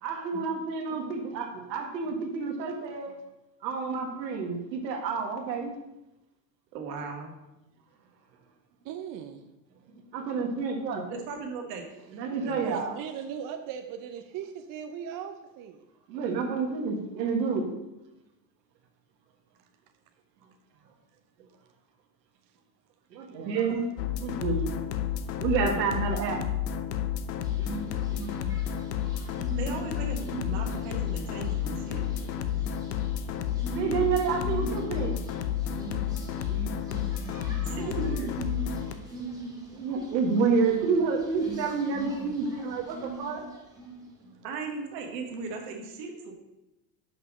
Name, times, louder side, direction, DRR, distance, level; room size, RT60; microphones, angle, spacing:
voice 1, 0.0-3.1 3.6-5.7 10.1-11.0 12.1-12.9 16.1-17.6 23.1-23.9 24.2-24.6 25.4-26.4 33.7-35.3 37.5-38.0 39.7-43.4, right 5 dB, 90° right, 1.5 m, -29 dB
voice 2, 6.7-7.3 11.1-11.9 29.6-32.0 37.7-38.3 44.4-46.3, right 4 dB, 75° right, 2.1 m, -37 dB
voice 3, 8.8-9.4 12.4-15.8 24.6-24.7 29.1-29.5 32.5-33.6 35.6-35.7 36.0-37.5 38.8-39.2 39.6-39.7 43.9-44.4, right 8 dB, 40° right, 0.7 m, -42 dB
sound 1, 24.0-38.9, left 9 dB, 85° left, 0.9 m, -31 dB
sound 2, 27.4-44.1, right 2 dB, 5° right, 2.2 m, -42 dB
5.9 x 5.4 x 6.3 m
supercardioid pair, 105°, 49 cm